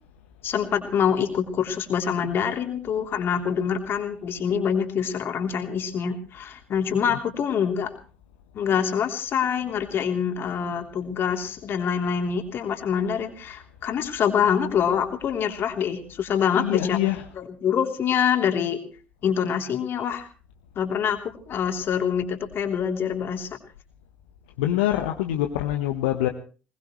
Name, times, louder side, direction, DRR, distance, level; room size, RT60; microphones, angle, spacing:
voice 1, 0.4-7.9 8.5-17.0 17.4-18.8 19.2-20.3 20.8-23.5, left 7 dB, 50° left, 4 dB, 3.4 m, -25 dB
voice 2, 16.5-17.3 24.6-26.3, left 13 dB, 75° left, 4 dB, 1.3 m, -25 dB
21.5 x 20.0 x 3.2 m, 0.37 s
figure-of-eight pair, 55°, 5 cm